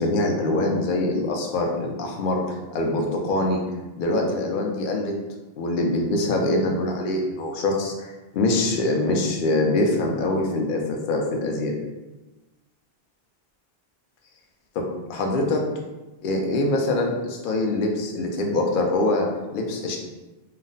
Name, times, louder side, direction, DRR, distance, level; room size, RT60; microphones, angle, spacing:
voice 1, 0.0-2.4 2.7-3.6 4.0-5.1 5.6-11.8 14.8-14.9 15.1-15.6 16.2-19.3 19.5-20.0, left 2 dB, 60° left, 1 dB, 0.6 m, -24 dB
2.4 x 2.0 x 3.8 m, 1.1 s
omnidirectional pair, 1.0 m